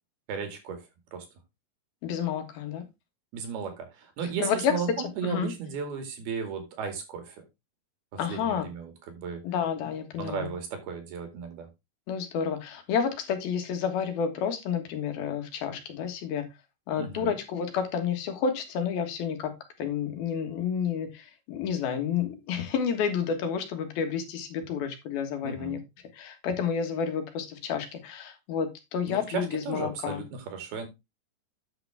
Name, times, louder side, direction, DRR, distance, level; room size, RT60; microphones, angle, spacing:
voice 1, 0.3-0.8 1.1-1.3 3.3-7.4 8.1-9.4 10.2-11.7 17.0-17.4 25.4-25.8 29.1-30.9, right 6 dB, 75° right, 4.1 m, -35 dB
voice 2, 2.0-2.8 4.4-4.7 5.2-5.5 8.2-8.6 9.4-10.5 12.1-16.4 16.9-19.5 19.8-25.8 26.1-30.2, left 7 dB, 75° left, 3.4 m, -30 dB
9.6 x 6.8 x 3.5 m
omnidirectional pair, 4.5 m